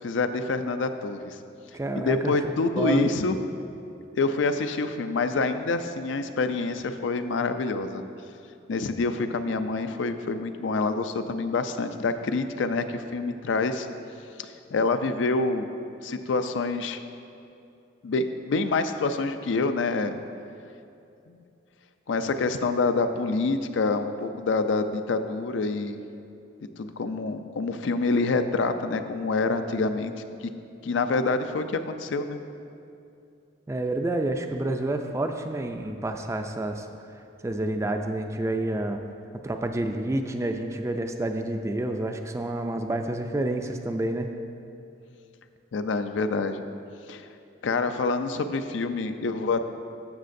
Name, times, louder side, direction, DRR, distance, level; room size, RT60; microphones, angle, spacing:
voice 1, 0.0-1.4 2.0-3.4 4.2-8.0 8.7-13.9 14.4-15.7 16.0-17.0 18.0-20.2 21.3-21.4 22.1-26.0 26.8-30.1 30.8-32.4 45.7-46.6 47.1-47.3 47.6-49.6, left 3 dB, 80° left, 9 dB, 0.4 m, -27 dB
voice 2, 1.7-2.3 2.8-3.1 33.7-36.9 37.4-39.0 39.4-44.3, right 1 dB, 15° right, 5 dB, 0.3 m, -29 dB
13.0 x 6.5 x 2.6 m, 2.6 s
head